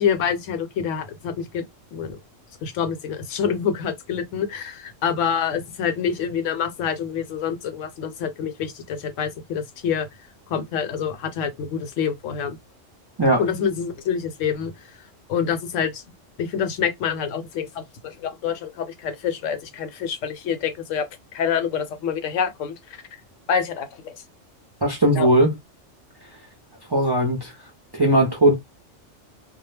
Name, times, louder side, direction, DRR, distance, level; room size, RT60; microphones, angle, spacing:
voice 1, 0.0-1.7 1.9-2.2 2.6-10.1 10.5-12.6 13.4-14.7 15.3-16.0 16.4-21.1 21.3-22.8 23.5-24.1 25.2-25.3, left 7 dB, 75° left, 0.9 m, -26 dB
voice 2, 24.8-25.5 26.9-27.5 27.9-28.5, right 1 dB, 30° right, 0.4 m, -18 dB
2.2 x 2.1 x 3.2 m
omnidirectional pair, 1.3 m